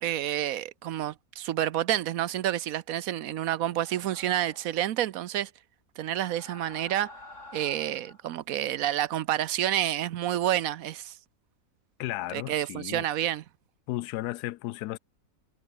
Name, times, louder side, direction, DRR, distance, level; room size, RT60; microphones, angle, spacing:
voice 1, 0.0-5.5 6.0-7.1 7.5-11.1 12.3-13.4, right 12 dB, 70° right, 1.0 m, -29 dB
sound 1, 3.6-4.8 6.1-8.2, left 2 dB, 50° left, 5.6 m, -49 dB
voice 2, 12.0-13.0 13.9-15.0, left 16 dB, 90° left, 1.1 m, -34 dB
omnidirectional pair, 1.6 m